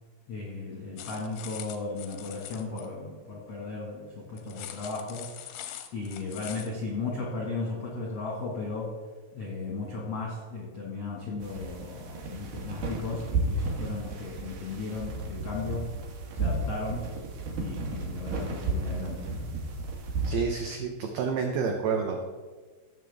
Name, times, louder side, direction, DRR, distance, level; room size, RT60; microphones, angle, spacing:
voice 1, 0.3-9.0 9.3-15.9 16.3-17.1 17.6-19.4, left 3 dB, 70° left, -3 dB, 1.4 m, -36 dB
sound 1, 1.0-2.9 4.4-6.7, left 11 dB, 90° left, 3.1 m, -43 dB
sound 2, 11.4-20.3, right 3 dB, 65° right, 3.0 m, -33 dB
voice 2, 20.2-22.2, right 5 dB, 85° right, 3 dB, 2.1 m, -29 dB
16.0 x 7.0 x 3.4 m, 1.4 s
omnidirectional pair, 5.4 m